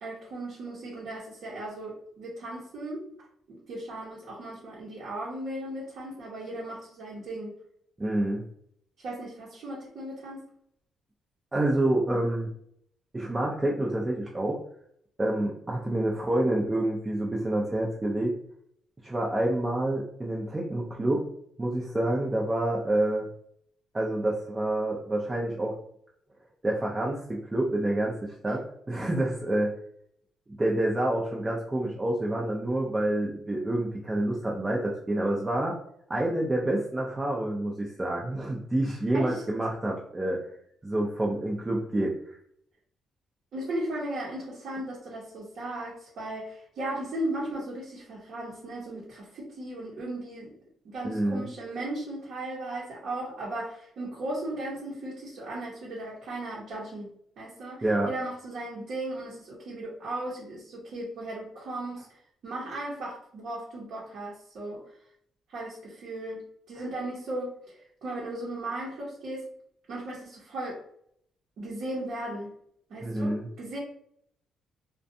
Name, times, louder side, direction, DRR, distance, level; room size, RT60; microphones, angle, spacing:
voice 1, 0.0-3.1 3.5-7.5 9.0-10.4 39.1-39.4 43.5-50.5 50.8-57.1 57.4-62.1 62.4-64.8 65.5-66.4 66.7-69.5 69.9-70.8 71.6-72.5 72.9-73.8, right 1 dB, 70° right, -6 dB, 0.8 m, -36 dB
voice 2, 8.0-8.4 11.5-12.5 13.1-14.6 15.2-18.3 19.0-21.3 21.6-23.3 23.9-25.8 26.6-29.7 30.6-35.8 36.1-40.4 40.8-42.4 51.0-51.4 57.8-58.1 66.8-66.9 73.0-73.5, right 1 dB, 20° right, -3 dB, 0.4 m, -28 dB
2.4 x 2.2 x 2.6 m, 0.67 s
cardioid pair, 90°, 0 cm